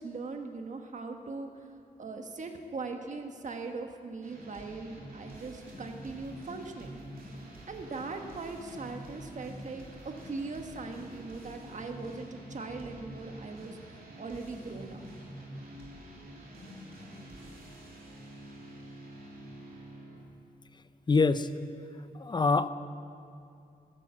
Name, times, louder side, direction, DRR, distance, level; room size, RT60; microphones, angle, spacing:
voice 1, 0.0-1.7 2.0-7.0 7.7-9.9 10.2-15.0, right 3 dB, 50° right, 4 dB, 1.4 m, -40 dB
sound 1, 4.2-20.2, right 1 dB, 65° right, 3.2 m, -47 dB
voice 2, 21.1-21.5 22.1-22.7, left 4 dB, 25° left, 12 dB, 0.5 m, -24 dB
14.5 x 13.0 x 7.5 m, 2.5 s
wide cardioid pair, 140°, 16 cm